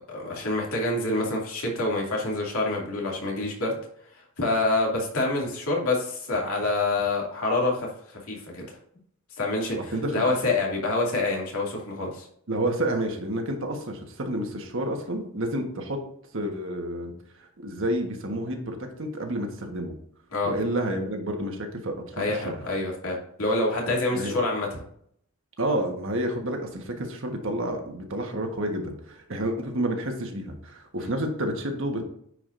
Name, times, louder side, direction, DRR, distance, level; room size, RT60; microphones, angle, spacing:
voice 1, 0.1-3.8 4.4-8.8 9.4-12.3 20.3-20.5 22.2-24.7 31.0-31.1, left 2 dB, 70° left, -2 dB, 2.5 m, -27 dB
voice 2, 9.9-10.2 12.5-16.0 16.3-17.1 17.4-19.9 20.4-22.0 22.3-22.6 24.1-24.3 25.6-32.0, right 1 dB, 60° right, 3 dB, 1.3 m, -29 dB
9.5 x 4.9 x 2.6 m, 0.67 s
head